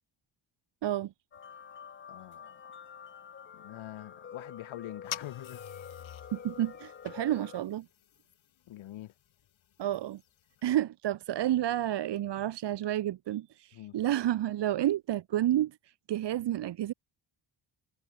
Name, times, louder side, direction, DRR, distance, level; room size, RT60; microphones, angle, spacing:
voice 1, 0.8-1.1 6.3-7.9 9.8-10.2 10.6-16.9, right 12 dB, 60° right, 0.7 m, -30 dB
sound 1, 1.3-7.6, left 7 dB, 25° left, 0.4 m, -48 dB
voice 2, 2.1-2.6 3.5-5.6 8.7-9.1 13.7-14.0, left 14 dB, 90° left, 0.9 m, -44 dB
sound 2, 5.0-10.8, left 11 dB, 75° left, 1.5 m, -48 dB
cardioid pair, 105°, 47 cm